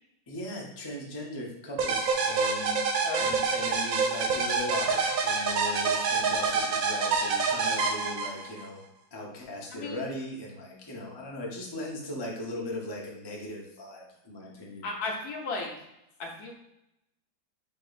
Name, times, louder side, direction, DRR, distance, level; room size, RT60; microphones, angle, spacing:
voice 1, 0.3-2.8 3.2-8.8 9.1-14.9, left 1 dB, 25° left, -3 dB, 0.5 m, -38 dB
sound 1, 1.8-8.7, right 4 dB, 65° right, 0.9 m, -27 dB
voice 2, 9.7-10.1 14.8-15.7 16.2-16.5, left 3 dB, 70° left, 1 dB, 1.2 m, -34 dB
4.7 x 4.5 x 2.5 m, 0.86 s
omnidirectional pair, 1.8 m